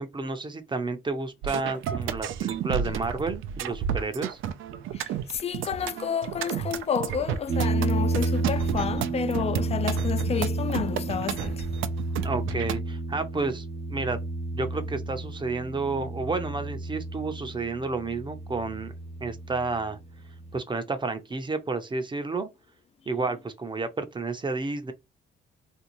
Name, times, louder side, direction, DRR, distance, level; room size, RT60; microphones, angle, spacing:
voice 1, 0.0-4.4 12.2-14.2 14.5-18.9 19.2-20.0 20.5-22.5 23.1-24.9, right 3 dB, 25° right, 0.6 m, -31 dB
sound 1, 1.4-12.8, right 8 dB, 80° right, 0.5 m, -32 dB
voice 2, 4.9-11.7, left 7 dB, 30° left, 0.3 m, -30 dB
sound 2, 7.5-20.6, right 2 dB, 55° right, 0.9 m, -31 dB
3.3 x 2.6 x 3.0 m
cardioid pair, 90°, 20 cm